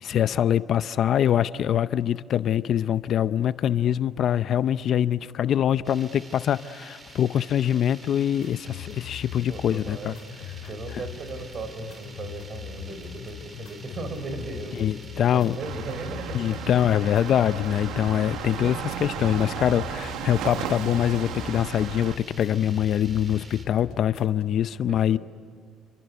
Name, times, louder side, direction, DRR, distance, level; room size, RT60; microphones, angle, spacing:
voice 1, 0.0-10.1 14.8-15.6 16.3-25.2, left 10 dB, 55° left, 0.6 m, -24 dB
sound 1, 5.8-23.7, right 3 dB, 25° right, 3.5 m, -48 dB
sound 2, 8.4-24.4, left 9 dB, 80° left, 3.4 m, -41 dB
voice 2, 9.5-10.2 10.7-16.6 24.9-25.2, right 3 dB, 45° right, 4.0 m, -37 dB
sound 3, 15.6-22.2, right 10 dB, 80° right, 1.3 m, -35 dB
29.0 x 25.0 x 8.2 m
cardioid pair, 120°, 0 cm